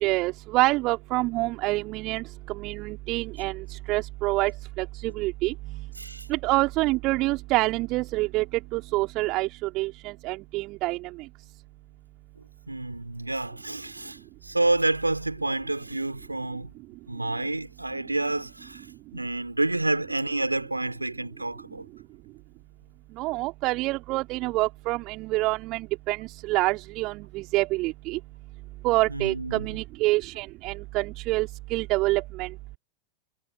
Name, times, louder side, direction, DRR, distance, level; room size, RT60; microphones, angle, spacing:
voice 1, 0.0-4.5 4.8-5.5 6.3-8.4 8.7-11.0 23.2-28.2 28.8-32.5, right 21 dB, 40° right, 3.1 m, -27 dB
voice 2, 6.0-6.3 12.7-16.7 17.1-18.9 19.1-21.9 29.1-29.7, right 2 dB, 85° right, 3.2 m, -29 dB
figure-of-eight pair, 90°, 0 cm